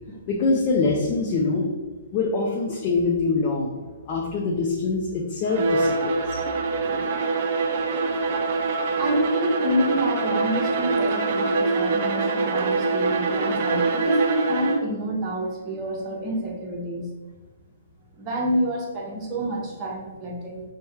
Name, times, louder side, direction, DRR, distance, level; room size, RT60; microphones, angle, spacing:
voice 1, 0.3-1.7 2.1-6.4, left 3 dB, 35° left, -2 dB, 0.5 m, -24 dB
Bowed string instrument, 5.5-15.0, right 3 dB, 45° right, 0.4 m, -24 dB
voice 2, 6.8-7.2 9.0-17.1 18.2-20.6, right 1 dB, 25° right, -2 dB, 0.8 m, -28 dB
5.4 x 2.2 x 3.1 m, 1.2 s
figure-of-eight pair, 120°, 0 cm